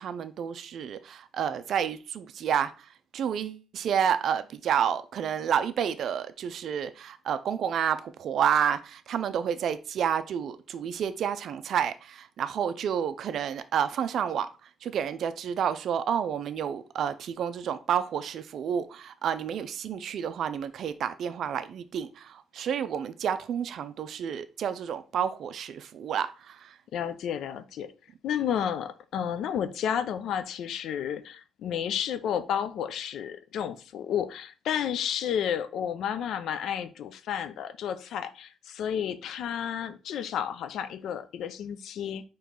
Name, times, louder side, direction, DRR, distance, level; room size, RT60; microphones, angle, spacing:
voice 1, 0.0-26.8, right 8 dB, 70° right, 0.4 m, -30 dB
voice 2, 26.9-27.9 28.2-42.2, left 9 dB, 75° left, 0.4 m, -31 dB
4.4 x 3.0 x 3.7 m
cardioid pair, 90°, 0 cm